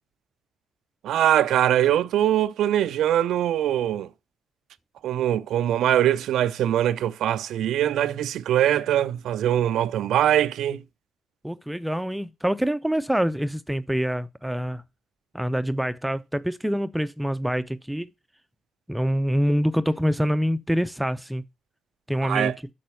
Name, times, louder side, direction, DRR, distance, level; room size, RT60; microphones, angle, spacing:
voice 1, 1.0-4.1 5.0-10.8 22.2-22.5, right 11 dB, 70° right, 0.5 m, -22 dB
voice 2, 11.4-14.8 15.3-18.1 18.9-21.4 22.1-22.5, equal, 5° right, 0.7 m, -25 dB
8.6 x 6.2 x 6.8 m
hypercardioid pair, 50°, 0 cm